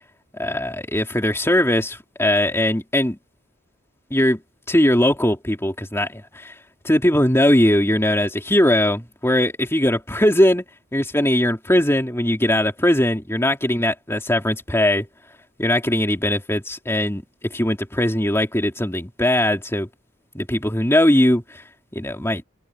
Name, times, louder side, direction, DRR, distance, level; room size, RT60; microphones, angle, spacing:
voice 1, 0.4-3.2 4.1-4.4 4.7-6.5 6.8-10.6 10.9-15.1 15.6-19.9 20.3-21.6 21.9-22.4, left 1 dB, 10° left, 3.1 m, -20 dB
head